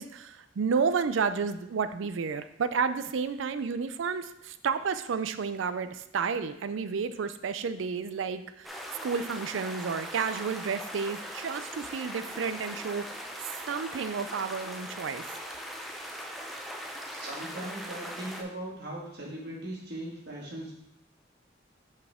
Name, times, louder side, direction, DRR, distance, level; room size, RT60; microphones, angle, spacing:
voice 1, 0.0-8.7 9.0-13.3 13.7-15.2, right 5 dB, 80° right, 12 dB, 0.4 m, -31 dB
sound 1, 8.6-18.4, equal, ahead, 0.6 m, -40 dB
voice 2, 17.1-20.7, right 1 dB, 60° right, -3 dB, 1.7 m, -39 dB
6.0 x 5.5 x 3.6 m, 0.77 s
head